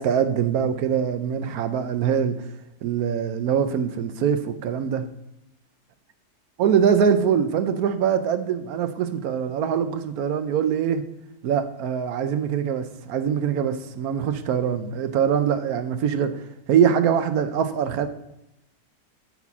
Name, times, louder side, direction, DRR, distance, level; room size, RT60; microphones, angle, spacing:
voice 1, 0.0-2.4 2.8-5.1 6.6-11.0 11.4-16.4 16.7-18.1, right 8 dB, 70° right, 1.0 m, -23 dB
8.9 x 4.2 x 6.9 m
omnidirectional pair, 1.8 m